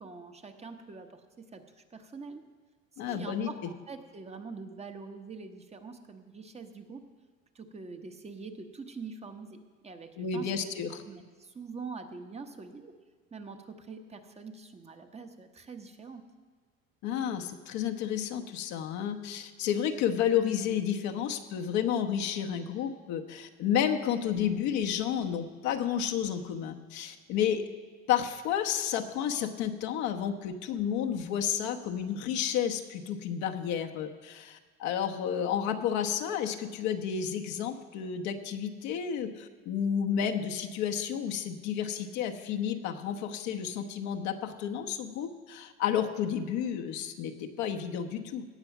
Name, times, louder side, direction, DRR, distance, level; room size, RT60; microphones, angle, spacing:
voice 1, 0.0-2.4 3.1-7.0 7.5-10.5 10.9-12.9 13.3-16.2, right 4 dB, 20° right, 6 dB, 1.0 m, -44 dB
voice 2, 3.0-3.5 10.2-11.0 17.0-27.6 28.1-48.5, left 8 dB, 70° left, 6 dB, 1.1 m, -31 dB
17.5 x 6.8 x 5.9 m, 1.5 s
supercardioid pair, 110°, 29 cm